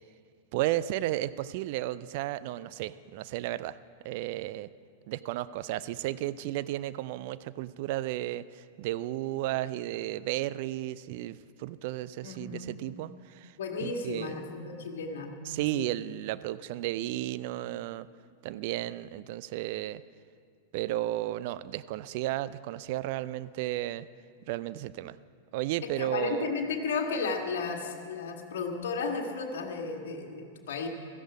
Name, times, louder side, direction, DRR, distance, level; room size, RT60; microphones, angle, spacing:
voice 1, 0.5-3.8 4.0-4.7 5.1-13.5 13.8-14.4 15.5-18.1 18.4-20.0 20.7-24.1 24.5-25.2 25.5-26.5, right 15 dB, 45° right, 16 dB, 0.4 m, -33 dB
voice 2, 12.2-12.7 13.6-15.3 15.7-15.9 25.8-30.9, left 4 dB, 55° left, 2 dB, 1.7 m, -34 dB
16.5 x 14.0 x 4.9 m, 2.3 s
figure-of-eight pair, 95°, 0 cm